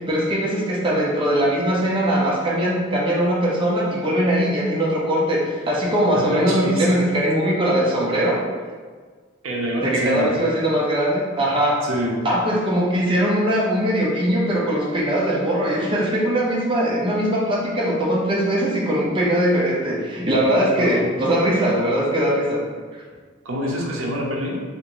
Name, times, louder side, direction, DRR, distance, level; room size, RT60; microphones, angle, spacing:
voice 1, 0.1-8.4 9.8-11.8 12.2-22.6, equal, 25° right, -5 dB, 0.6 m, -21 dB
voice 2, 6.2-6.9 9.4-10.3 11.8-12.3 20.8-21.1 23.4-24.6, equal, 80° right, -2 dB, 0.6 m, -26 dB
3.4 x 2.5 x 3.0 m, 1.5 s
head